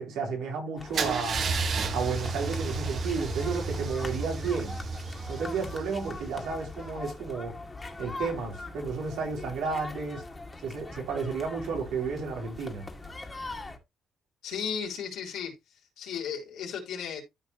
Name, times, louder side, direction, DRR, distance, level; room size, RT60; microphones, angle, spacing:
voice 1, 0.0-1.4 1.9-4.8 5.3-7.6 8.0-10.3 10.6-12.9, right 5 dB, 85° right, 4.0 m, -32 dB
sound 1, 0.8-13.8, left 2 dB, 20° left, 2.1 m, -42 dB
Car / Engine starting / Idling, 0.9-6.8, right 4 dB, 55° right, 1.6 m, -32 dB
voice 2, 14.4-15.5 16.0-17.2, left 7 dB, 85° left, 3.9 m, -34 dB
13.5 x 5.0 x 3.1 m
cardioid pair, 90°, 0 cm